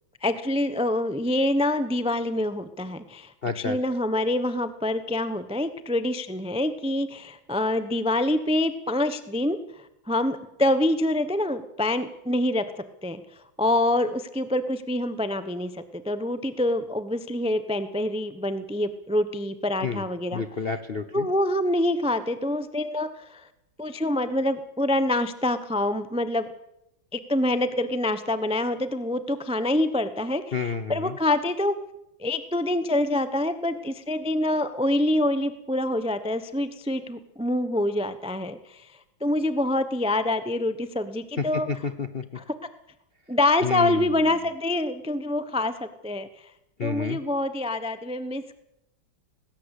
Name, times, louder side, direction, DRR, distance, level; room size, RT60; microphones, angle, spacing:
voice 1, 0.2-9.6 10.1-12.6 13.0-13.2 13.6-20.4 21.1-23.5 23.8-26.5 27.1-31.8 32.2-38.9 39.2-41.7 42.4-42.5 43.3-46.3 46.8-48.6, left 1 dB, 10° right, 11 dB, 0.4 m, -26 dB
voice 2, 3.4-3.8 19.8-20.0 20.3-21.3 30.5-31.2 41.4-42.2 43.6-44.3 46.8-47.2, left 5 dB, 50° left, 10 dB, 0.7 m, -30 dB
19.5 x 16.5 x 8.3 m, 0.84 s
omnidirectional pair, 2.2 m